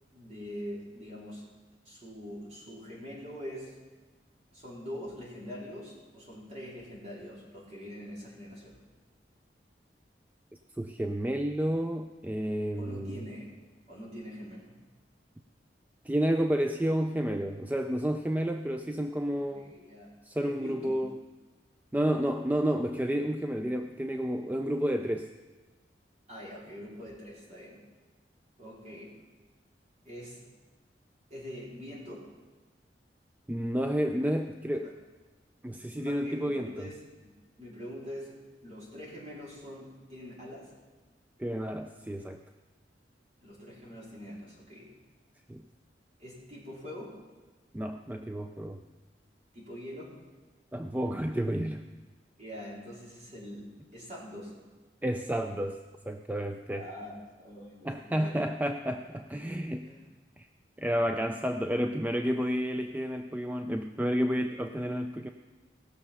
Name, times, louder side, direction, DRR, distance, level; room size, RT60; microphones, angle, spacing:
voice 1, 0.1-1.5 1.8-3.8 4.5-8.8 12.8-13.5 13.9-14.7 19.4-20.2 20.4-21.0 26.3-27.8 28.6-29.1 30.0-30.4 31.3-32.2 34.8-34.9 35.9-37.0 37.2-38.3 38.6-40.7 43.4-44.9 46.2-47.2 49.5-50.1 52.4-54.6 56.7-58.5 59.8-60.0, equal, 40° right, -6 dB, 4.1 m, -44 dB
voice 2, 10.8-13.2 16.0-19.8 20.2-21.1 21.9-25.3 33.5-35.0 35.6-36.9 41.4-42.4 45.5-45.6 47.7-48.8 50.7-51.8 55.0-56.9 57.8-59.9 60.4-60.5 60.8-65.3, equal, 10° right, 6 dB, 0.3 m, -30 dB
18.0 x 6.7 x 5.7 m, 1.3 s
head